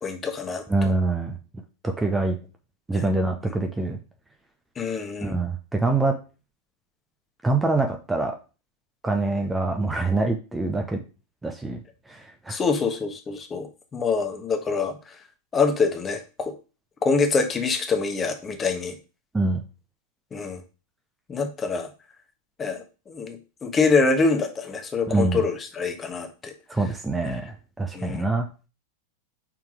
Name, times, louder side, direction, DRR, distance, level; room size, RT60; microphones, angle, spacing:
voice 1, 0.0-0.9 3.0-3.1 4.8-5.4 12.5-15.1 15.5-16.5 17.0-19.0 20.3-20.6 21.3-21.9 22.6-26.5 27.3-27.4 27.9-28.2, left 4 dB, 20° left, 5 dB, 1.4 m, -25 dB
voice 2, 0.7-1.4 1.8-2.4 2.9-4.0 5.2-6.2 7.4-8.4 9.0-11.0 11.4-11.8 12.1-12.6 19.3-19.6 25.1-25.4 26.7-28.5, right 3 dB, 10° right, 4 dB, 1.0 m, -25 dB
6.0 x 4.6 x 5.2 m, 0.32 s
figure-of-eight pair, 90°, 0 cm